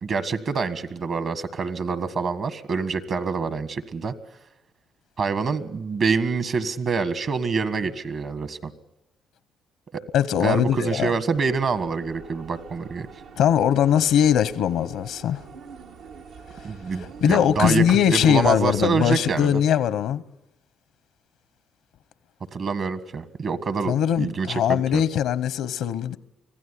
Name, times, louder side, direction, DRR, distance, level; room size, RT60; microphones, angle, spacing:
voice 1, 0.0-4.1 5.2-8.7 9.9-10.0 10.4-13.1 16.6-19.6 22.5-25.0, right 5 dB, 55° right, 1.6 m, -26 dB
voice 2, 10.1-11.1 13.4-15.4 17.2-20.2 23.9-26.2, left 9 dB, 85° left, 0.8 m, -21 dB
sound 1, 11.3-19.3, right 5 dB, 85° right, 1.5 m, -44 dB
25.0 x 16.0 x 10.0 m
cardioid pair, 90°, 0 cm